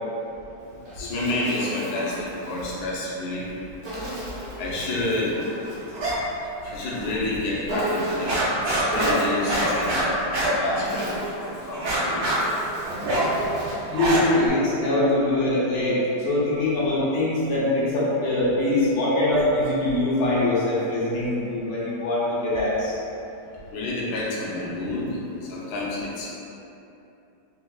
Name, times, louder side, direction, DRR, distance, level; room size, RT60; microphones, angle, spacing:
Insect, 0.6-2.8 3.8-5.9 7.7-8.5 8.9-10.0 10.7-13.9, right 1 dB, 55° right, 1.0 m, -34 dB
voice 1, 0.9-3.5 4.6-5.4 6.7-10.0 10.5-12.2 23.7-26.3, left 2 dB, 70° left, -6 dB, 0.9 m, -29 dB
sound 1, 5.9-6.2 6.5-7.2 7.6-7.7 8.0-11.3 11.7-14.5, right 1 dB, 75° right, 1.5 m, -25 dB
voice 2, 13.9-23.0, left 1 dB, 90° left, -8 dB, 1.8 m, -23 dB
4.4 x 2.2 x 2.3 m, 2.8 s
omnidirectional pair, 2.4 m